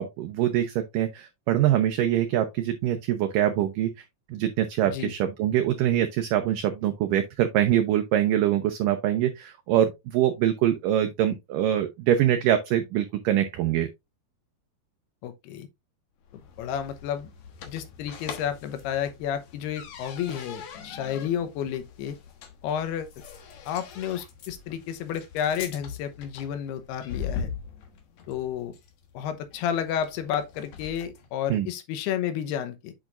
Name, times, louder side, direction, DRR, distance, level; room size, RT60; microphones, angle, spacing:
voice 1, 0.0-3.9 4.3-13.9 31.5-31.7, right 11 dB, 75° right, 2.1 m, -24 dB
voice 2, 15.2-15.7 16.6-17.3 17.7-22.2 22.6-23.2 23.7-27.5 28.3-28.7 29.1-32.9, left 9 dB, 90° left, 3.0 m, -31 dB
sound 1, 16.2-31.3, left 7 dB, 60° left, 2.1 m, -42 dB
8.6 x 5.8 x 2.5 m
omnidirectional pair, 4.5 m